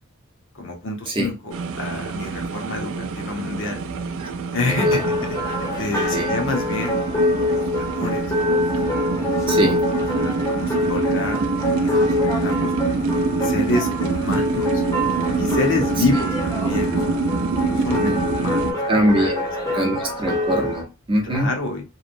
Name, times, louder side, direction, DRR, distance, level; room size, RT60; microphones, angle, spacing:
voice 1, 0.5-3.8 4.5-7.0 7.5-9.0 9.6-9.7 10.2-11.4 11.8-12.1 12.4-13.1 13.4-14.8 15.4-17.1 17.6-20.1 21.2-21.8, left 3 dB, 60° left, 0.7 m, -28 dB
sound 1, 1.5-18.7, right 4 dB, 65° right, 0.3 m, -25 dB
voice 2, 4.6-5.0 6.1-6.3 9.5-9.8 18.9-19.4 19.7-21.5, right 1 dB, 25° right, 0.6 m, -22 dB
sound 2, 4.7-20.8, left 1 dB, 15° left, 0.7 m, -25 dB
2.8 x 2.0 x 2.5 m
head